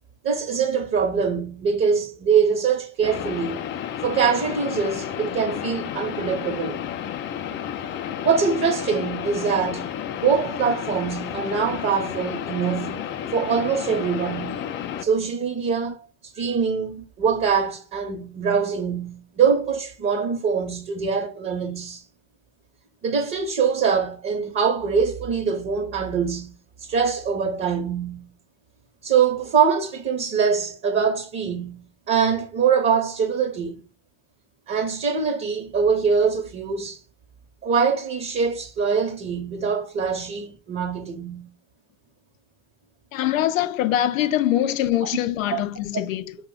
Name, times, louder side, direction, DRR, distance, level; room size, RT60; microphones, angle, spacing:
voice 1, 0.2-3.6 4.0-6.8 8.2-13.1 13.3-14.6 15.0-22.0 23.0-26.5 26.8-28.3 29.0-33.8 34.7-37.0 37.6-41.5 45.5-45.6, right 6 dB, 35° right, 0.8 m, -23 dB
sound 1, 3.0-15.0, left 9 dB, 30° left, 0.4 m, -31 dB
voice 2, 43.1-46.4, left 12 dB, 80° left, 0.5 m, -23 dB
4.7 x 2.2 x 3.7 m
hypercardioid pair, 85°, 39 cm